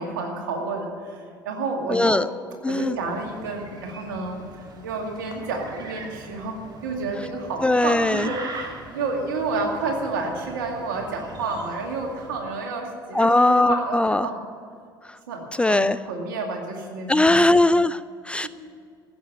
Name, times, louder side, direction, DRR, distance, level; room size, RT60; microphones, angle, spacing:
voice 1, 0.0-2.2 2.7-14.4 15.3-17.5 18.4-18.5, right 3 dB, 70° right, 2 dB, 2.3 m, -30 dB
voice 2, 1.9-2.3 2.6-2.9 7.6-8.3 13.1-14.3 15.6-16.0 17.1-18.5, left 2 dB, 10° left, 14 dB, 0.3 m, -19 dB
sound 1, 2.8-12.5, right 3 dB, 40° right, 2.3 m, -41 dB
15.5 x 7.2 x 9.4 m, 2.3 s
figure-of-eight pair, 60°, 11 cm